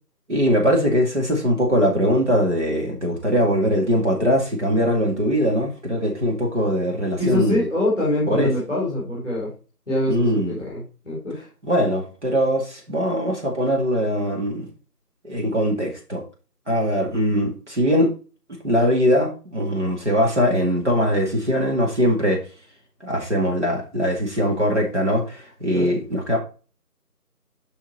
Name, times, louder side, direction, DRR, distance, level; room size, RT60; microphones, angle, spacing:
voice 1, 0.3-7.6 8.3-8.5 10.1-10.6 11.6-14.7 15.2-16.2 16.7-18.1 18.6-22.4 23.0-26.4, equal, 45° right, 2.3 m, -21 dB
voice 2, 7.2-9.5 9.9-11.4 25.7-26.0, left 1 dB, ahead, 3.5 m, -24 dB
7.6 x 5.8 x 4.3 m
figure-of-eight pair, 175°, 47 cm